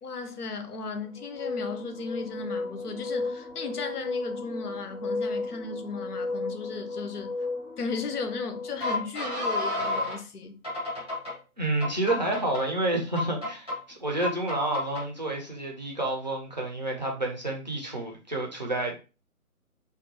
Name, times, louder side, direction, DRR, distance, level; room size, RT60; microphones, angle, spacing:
voice 1, 0.0-7.3 7.8-10.6, left 4 dB, 90° left, 0.7 m, -36 dB
sound 1, 1.2-10.2 10.6-11.3 11.8-12.6 13.2-13.8 14.2-15.0, left 2 dB, 5° left, 0.8 m, -33 dB
voice 2, 11.6-19.0, right 2 dB, 30° right, 0.4 m, -29 dB
2.5 x 2.2 x 2.7 m
figure-of-eight pair, 150°, 44 cm